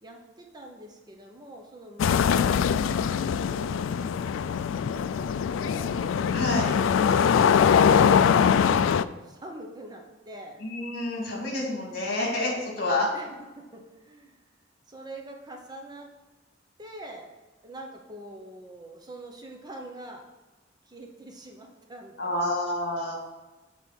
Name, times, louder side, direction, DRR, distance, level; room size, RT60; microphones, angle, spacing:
voice 1, 0.0-3.0 3.4-6.0 7.1-8.8 9.2-10.6 13.1-14.4 14.9-16.1 16.8-17.3 17.6-20.3 20.8-22.3, right 1 dB, 20° right, 2 dB, 0.8 m, -45 dB
sound 1, 2.0-9.0, left 7 dB, 75° left, 0.3 m, -22 dB
voice 2, 6.3-6.7 10.6-13.1 22.2-23.1, left 2 dB, 55° left, -1 dB, 2.7 m, -28 dB
7.2 x 4.6 x 6.1 m, 1.2 s
head